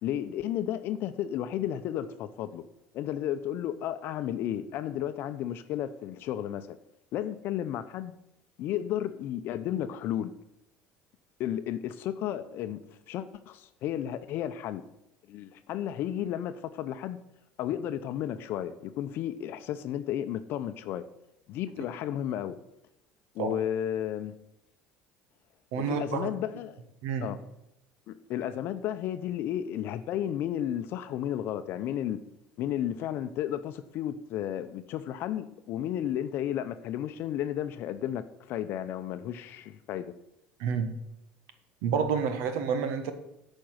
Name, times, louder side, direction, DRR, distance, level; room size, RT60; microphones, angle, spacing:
voice 1, 0.0-2.6 2.9-6.8 7.1-8.1 8.6-10.3 11.4-12.8 13.1-14.8 15.3-17.2 17.6-21.0 21.5-22.6 23.3-24.3 25.8-26.8 27.2-27.4 28.1-32.2 32.6-40.1, left 11 dB, 65° left, 10 dB, 0.7 m, -33 dB
voice 2, 25.7-26.3 27.0-27.3 40.6-40.9 41.8-43.1, right 6 dB, 80° right, 8 dB, 1.4 m, -29 dB
8.6 x 5.4 x 7.8 m, 0.84 s
supercardioid pair, 100°, 4 cm